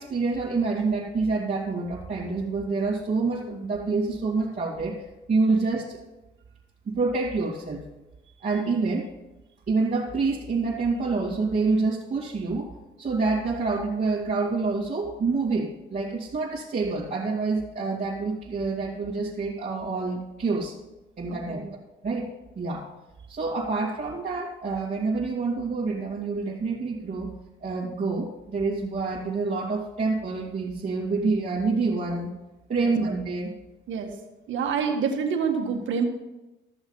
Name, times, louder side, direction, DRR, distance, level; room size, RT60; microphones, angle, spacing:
voice 1, 0.0-6.0 6.9-7.8 8.4-9.1 9.7-12.7 13.0-20.8 21.2-21.6 22.0-22.3 22.5-22.9 23.3-27.3 27.6-32.4 32.7-33.5, right 3 dB, 40° right, -5 dB, 2.5 m, -27 dB
voice 2, 21.3-21.7 32.7-32.9 33.9-34.1 34.5-36.0, right 6 dB, 75° right, 4 dB, 1.8 m, -27 dB
14.0 x 7.1 x 5.6 m, 1.0 s
cardioid pair, 90°, 20 cm